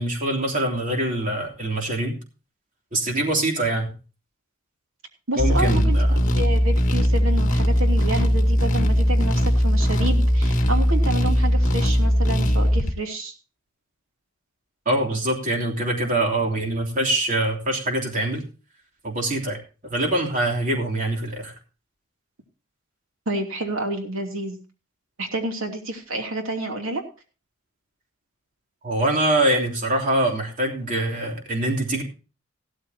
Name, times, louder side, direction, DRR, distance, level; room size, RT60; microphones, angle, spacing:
voice 1, 0.0-2.2 2.9-3.9 5.3-6.2 14.8-18.4 19.0-19.6 19.8-21.5 28.8-32.0, right 1 dB, 40° right, 1 dB, 3.2 m, -24 dB
voice 2, 5.3-13.3 23.3-24.6 25.2-27.0, right 1 dB, 75° right, 4 dB, 2.9 m, -29 dB
sound 1, 5.4-12.9, equal, 35° left, 1.9 m, -19 dB
15.5 x 13.0 x 2.8 m, 0.34 s
head